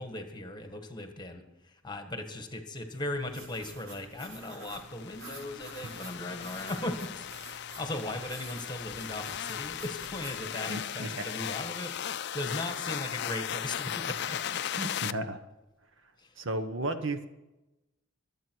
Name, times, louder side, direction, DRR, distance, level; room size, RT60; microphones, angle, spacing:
voice 1, 0.0-7.3 7.5-14.4 16.2-16.3, left 1 dB, 20° left, 6 dB, 1.5 m, -38 dB
sound 1, 2.9-10.5, right 2 dB, 85° right, 5.8 m, -49 dB
sound 2, 4.7-15.1, left 10 dB, 50° left, 0.4 m, -37 dB
voice 2, 10.7-11.3 14.7-15.4 16.4-17.2, right 1 dB, 60° right, 8 dB, 1.2 m, -34 dB
24.5 x 8.6 x 4.6 m, 0.98 s
head